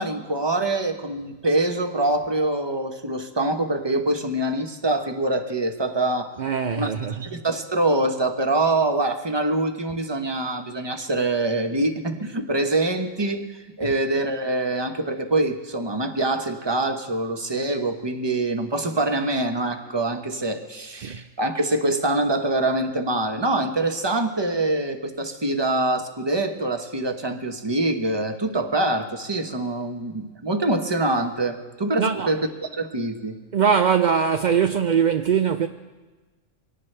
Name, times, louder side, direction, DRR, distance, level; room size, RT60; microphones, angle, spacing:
voice 1, 0.0-6.3 6.7-6.9 7.2-32.4 32.7-33.3, right 2 dB, 20° right, 1.0 m, -24 dB
voice 2, 6.4-7.2 13.8-13.9 21.0-21.2 32.0-32.3 33.5-35.7, right 7 dB, 55° right, 0.5 m, -21 dB
24.0 x 18.0 x 3.3 m
omnidirectional pair, 1.4 m